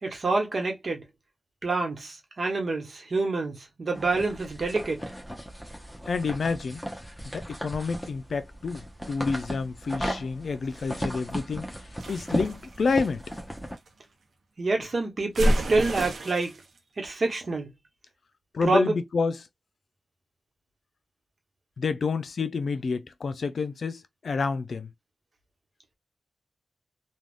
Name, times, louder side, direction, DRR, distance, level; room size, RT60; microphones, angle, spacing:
voice 1, 0.0-1.0 1.6-5.0 14.6-16.5 17.0-17.7 18.6-19.0, right 3 dB, 55° right, 1.1 m, -27 dB
sound 1, 3.9-13.8, equal, 5° left, 0.9 m, -36 dB
voice 2, 6.1-6.8 7.3-11.7 12.1-13.3 18.5-19.5 21.8-24.9, left 4 dB, 75° left, 0.5 m, -29 dB
sound 2, 12.0-13.9 15.3-16.6, equal, 90° right, 0.8 m, -29 dB
3.5 x 2.3 x 2.4 m
wide cardioid pair, 100°, 0 cm